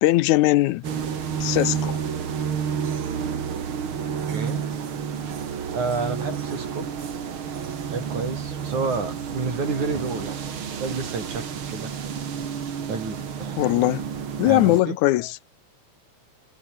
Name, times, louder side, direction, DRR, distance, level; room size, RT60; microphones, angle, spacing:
voice 1, 0.0-0.8 1.4-2.0 13.6-14.0 14.4-15.4, left 17 dB, 80° left, 2.1 m, -20 dB
sound 1, 0.8-14.8, right 7 dB, 45° right, 2.6 m, -30 dB
voice 2, 4.3-4.7 5.7-6.9 7.9-10.4 10.8-12.0 12.9-13.6 14.5-15.0, right 4 dB, 75° right, 7.5 m, -30 dB
omnidirectional pair, 3.4 m